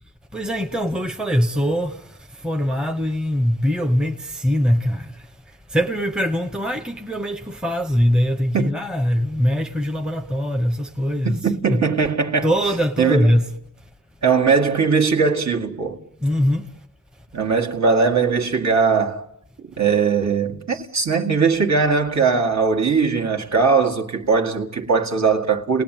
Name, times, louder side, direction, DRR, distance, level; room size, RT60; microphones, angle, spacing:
voice 1, 0.3-5.3 5.7-11.4 11.7-11.8 12.4-13.5 16.2-16.7, equal, ahead, 1.0 m, -22 dB
voice 2, 11.2-12.5 13.0-13.4 14.2-16.0 17.3-19.2 19.6-25.8, right 5 dB, 50° right, 2.0 m, -20 dB
29.5 x 19.5 x 9.1 m
wide cardioid pair, 165°, 35 cm